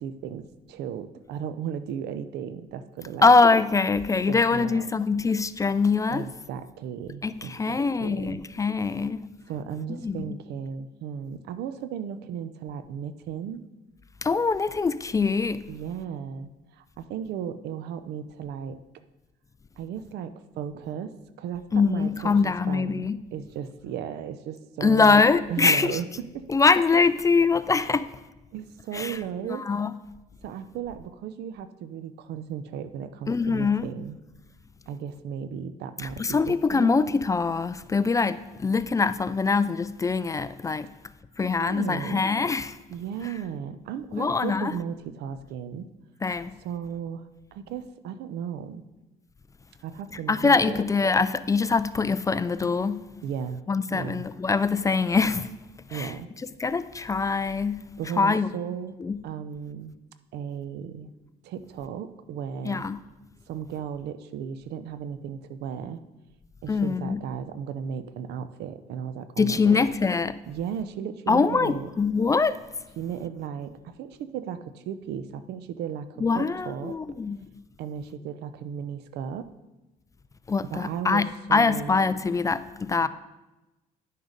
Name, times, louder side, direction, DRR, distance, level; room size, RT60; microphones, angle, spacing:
voice 1, 0.0-3.3 4.3-4.9 6.1-8.4 9.5-13.6 15.7-18.8 19.8-21.1 21.4-25.2 25.5-26.5 28.5-29.7 30.4-34.2 34.9-37.0 41.4-42.2 42.9-45.9 46.6-48.8 49.8-50.8 53.2-53.6 53.9-54.2 55.9-56.3 58.0-59.0 59.2-59.9 60.3-61.1 61.4-62.9 63.5-66.0 66.6-69.8 70.5-71.9 73.0-77.0 77.8-79.5 80.7-82.0 83.0-83.1, right 8 dB, 75° right, 0.7 m, -35 dB
voice 2, 3.2-6.2 7.2-9.2 9.9-10.3 14.2-15.6 21.7-23.2 24.8-26.0 26.5-28.1 28.9-29.2 29.5-29.9 33.3-33.9 36.2-40.9 41.4-42.8 44.1-44.7 46.2-46.5 50.3-53.1 53.7-55.5 55.9-56.1 56.6-57.9 58.2-58.5 59.0-59.2 62.6-63.0 66.7-67.2 69.4-70.4 71.3-72.6 76.2-77.4 80.5-83.1, left 4 dB, 20° left, 0.4 m, -23 dB
10.5 x 6.5 x 5.1 m
cardioid pair, 110°, 17 cm